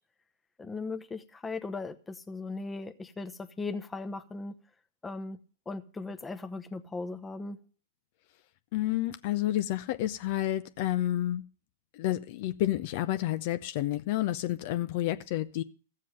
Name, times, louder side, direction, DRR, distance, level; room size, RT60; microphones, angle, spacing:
voice 1, 0.6-4.6 5.0-5.4 5.7-7.6, left 3 dB, 10° left, 0.9 m, -38 dB
voice 2, 8.7-11.4 11.9-15.6, left 14 dB, 50° left, 0.6 m, -30 dB
14.5 x 7.5 x 6.4 m
hypercardioid pair, 110°, 0 cm